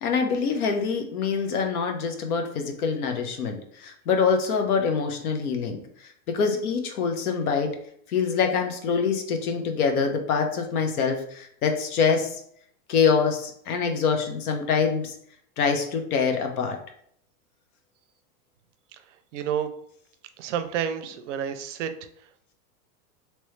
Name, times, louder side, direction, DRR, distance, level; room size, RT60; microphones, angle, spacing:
voice 1, 0.0-5.8 6.3-7.8 8.1-12.4 12.9-15.2 15.6-16.8, left 5 dB, 75° left, 4 dB, 1.0 m, -25 dB
voice 2, 19.3-19.7 20.4-21.9, right 8 dB, 55° right, 10 dB, 0.5 m, -29 dB
3.1 x 3.0 x 3.1 m, 0.66 s
supercardioid pair, 155°, 44 cm